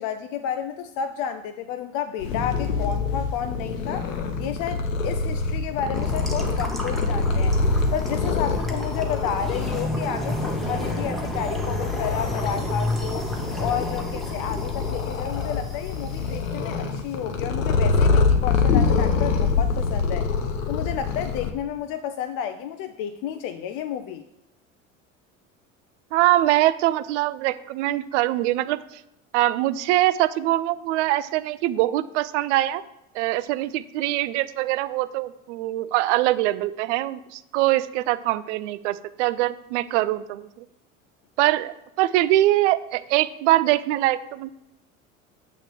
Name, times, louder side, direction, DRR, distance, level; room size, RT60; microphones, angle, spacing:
voice 1, 0.0-4.1 4.4-7.6 7.9-13.3 13.6-20.3 20.7-24.2, left 8 dB, 50° left, 9 dB, 0.6 m, -31 dB
Purr, 2.2-21.5, left 4 dB, 75° left, 0.9 m, -25 dB
sound 1, 5.9-16.4, equal, ahead, 1.3 m, -32 dB
voice 2, 26.1-28.8 29.3-32.8 33.1-40.6 41.4-44.5, right 15 dB, 65° right, 14 dB, 0.5 m, -23 dB
8.8 x 3.2 x 6.6 m, 0.87 s
figure-of-eight pair, 70°, 39 cm